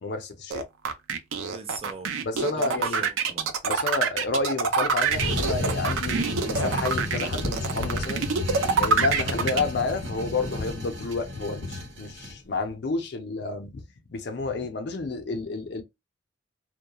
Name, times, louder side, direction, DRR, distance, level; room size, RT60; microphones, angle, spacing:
voice 1, 0.0-0.7 2.2-3.1 3.6-8.3 8.7-13.8 14.1-15.8, left 3 dB, 60° left, 0.5 m, -30 dB
sound 1, 0.5-9.6, right 5 dB, 90° right, 0.5 m, -25 dB
voice 2, 1.5-3.5, right 4 dB, 30° right, 0.4 m, -41 dB
sound 2, 5.0-12.4, left 2 dB, 70° right, 1.1 m, -32 dB
2.3 x 2.1 x 2.8 m
head